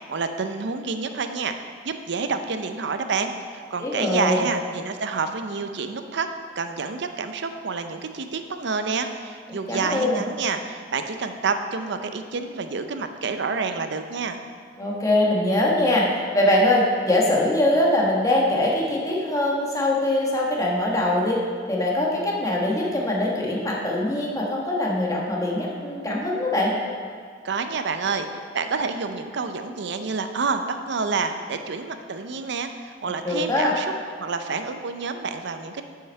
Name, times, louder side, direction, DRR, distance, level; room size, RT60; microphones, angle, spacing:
voice 1, 0.1-1.5 1.8-6.3 6.6-14.4 27.4-33.9 34.2-35.8, right 4 dB, 65° right, 8 dB, 0.6 m, -28 dB
voice 2, 3.8-4.4 9.7-10.2 14.8-16.1 16.3-21.4 21.7-26.7 33.2-33.7, left 1 dB, 20° left, -3 dB, 1.3 m, -22 dB
7.8 x 5.7 x 5.3 m, 2.1 s
head